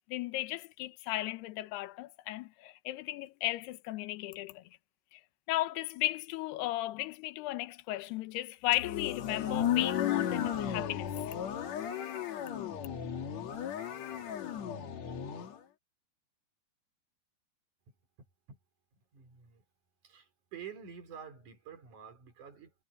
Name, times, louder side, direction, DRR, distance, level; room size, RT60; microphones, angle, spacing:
voice 1, 0.1-4.6 5.1-5.2 5.5-11.3, left 17 dB, 70° left, 2.7 m, -35 dB
sound 1, 8.7-15.6, left 9 dB, 55° left, 2.0 m, -34 dB
voice 2, 19.1-19.6 20.0-22.7, right 7 dB, 40° right, 5.1 m, -48 dB
omnidirectional pair, 5.5 m